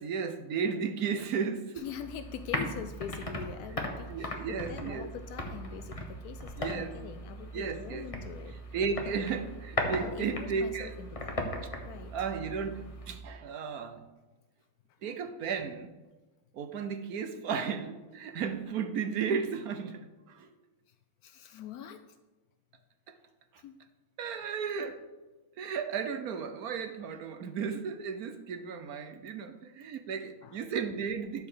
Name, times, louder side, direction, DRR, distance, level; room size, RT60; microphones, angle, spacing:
voice 1, 0.0-1.8 4.1-5.1 6.6-6.9 7.5-8.1 8.7-11.0 12.1-14.1 15.0-15.9 16.5-20.5 23.1-23.2 23.5-23.6 24.2-25.0 25.6-31.5, right 6 dB, 60° right, 1.0 m, -34 dB
voice 2, 1.8-8.6 9.0-9.2 10.0-11.4 11.8-12.1 20.9-21.0 21.2-22.2 23.6-23.8 29.4-29.5 30.4-30.6, left 8 dB, 85° left, 0.8 m, -43 dB
sound 1, 1.8-13.2, left 1 dB, 20° left, 0.9 m, -38 dB
12.5 x 4.9 x 6.7 m
omnidirectional pair, 2.2 m